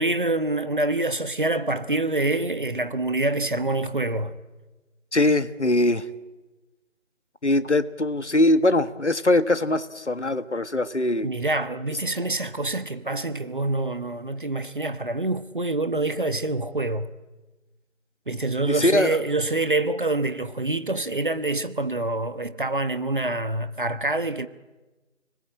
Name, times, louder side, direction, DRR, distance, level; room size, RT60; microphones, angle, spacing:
voice 1, 0.0-4.4 11.2-17.1 18.3-24.5, right 2 dB, 40° right, 1.3 m, -26 dB
voice 2, 5.1-6.1 7.4-11.3 18.7-19.2, left 1 dB, 65° left, 1.7 m, -22 dB
30.0 x 20.5 x 8.8 m
figure-of-eight pair, 165°, 37 cm